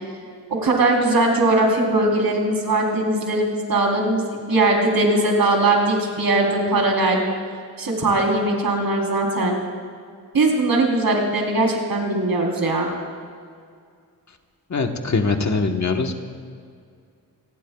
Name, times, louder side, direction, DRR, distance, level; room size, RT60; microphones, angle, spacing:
voice 1, 0.5-7.2 7.8-9.6 10.3-12.9, right 2 dB, 75° right, -1 dB, 3.8 m, -20 dB
voice 2, 14.7-16.2, left 4 dB, 50° left, 4 dB, 1.3 m, -22 dB
27.0 x 20.5 x 2.4 m, 2.2 s
wide cardioid pair, 145°, 36 cm